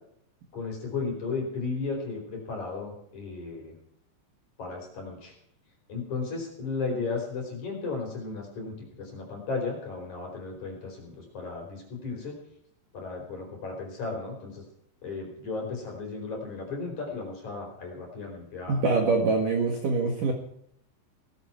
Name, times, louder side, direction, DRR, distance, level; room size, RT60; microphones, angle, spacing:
voice 1, 0.5-3.7 4.6-5.3 5.9-12.3 12.9-14.6 15.0-18.8, left 4 dB, 40° left, 1 dB, 5.5 m, -35 dB
voice 2, 18.7-20.3, right 3 dB, 55° right, 2 dB, 2.7 m, -24 dB
19.0 x 14.0 x 4.6 m, 0.71 s
omnidirectional pair, 5.6 m